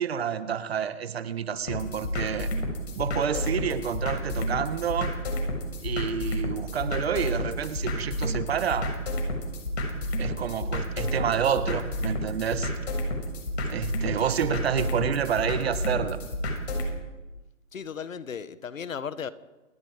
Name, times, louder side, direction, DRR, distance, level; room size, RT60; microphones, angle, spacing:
voice 1, 0.0-2.5 2.9-5.1 5.8-8.9 10.2-12.7 13.7-16.2, right 8 dB, 50° right, 11 dB, 1.7 m, -29 dB
sound 1, 1.7-16.9, equal, 50° left, 7.1 m, -31 dB
voice 2, 17.7-19.3, left 7 dB, 70° left, 14 dB, 1.6 m, -35 dB
28.5 x 19.5 x 5.2 m, 1.1 s
hypercardioid pair, 160°, 40 cm